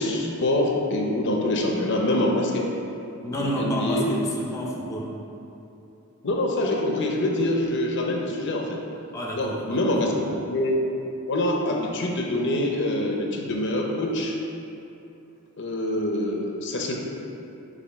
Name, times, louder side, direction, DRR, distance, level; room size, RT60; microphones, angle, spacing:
voice 1, 0.0-2.7 3.4-4.1 6.2-8.8 9.4-10.1 10.5-10.8 11.3-14.4 15.6-16.9, left 1 dB, 55° left, 0 dB, 0.6 m, -25 dB
voice 2, 3.2-5.2 9.1-10.1, equal, 15° left, -2 dB, 0.6 m, -30 dB
6.9 x 2.7 x 5.5 m, 2.8 s
head